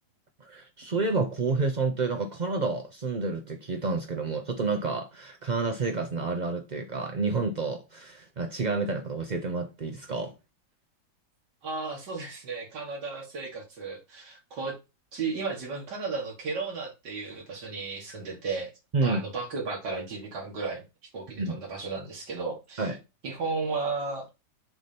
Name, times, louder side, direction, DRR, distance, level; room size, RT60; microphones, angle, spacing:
voice 1, 0.4-10.3 18.9-19.2 21.4-21.6 22.8-23.0, right 3 dB, 70° right, 0.4 m, -29 dB
voice 2, 11.6-14.7 15.1-18.7 19.0-20.8 21.1-22.9 23.2-24.3, right 4 dB, 85° right, 2.4 m, -34 dB
7.1 x 2.8 x 5.1 m
omnidirectional pair, 1.8 m